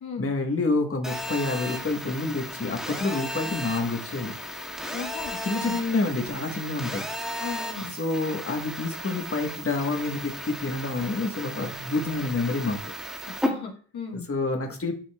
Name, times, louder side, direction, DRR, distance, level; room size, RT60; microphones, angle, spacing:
voice 1, 0.2-4.3 5.4-7.1 7.9-12.9 14.1-14.9, left 3 dB, 35° left, 2 dB, 1.4 m, -28 dB
Telephone, 1.0-13.5, equal, ahead, 1.8 m, -35 dB
voice 2, 4.9-5.8 7.4-7.9 13.3-14.3, left 5 dB, 75° left, 0 dB, 1.4 m, -37 dB
10.0 x 4.1 x 2.3 m, 0.42 s
cardioid pair, 50°, 38 cm